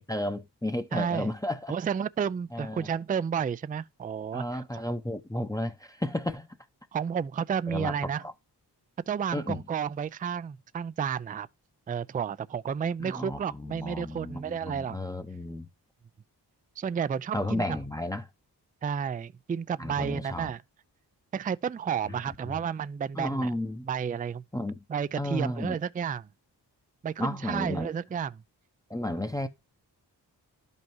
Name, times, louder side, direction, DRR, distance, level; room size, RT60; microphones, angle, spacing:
voice 1, 0.1-1.7 2.5-2.9 4.3-6.5 7.7-8.0 8.2-8.3 9.3-9.6 13.0-15.7 17.3-18.3 19.8-20.5 22.4-22.5 23.1-23.9 24.5-24.8 25.2-25.8 27.2-27.9 28.9-29.5, left 1 dB, 10° left, 0.7 m, -33 dB
voice 2, 0.9-1.3 1.7-4.6 6.9-8.2 9.1-11.5 11.9-15.0 16.8-17.6 18.8-20.6 21.3-23.5 23.8-24.4 24.9-26.3 27.0-28.4, right 7 dB, 20° right, 0.3 m, -31 dB
11.5 x 5.4 x 3.1 m
cardioid pair, 50°, 42 cm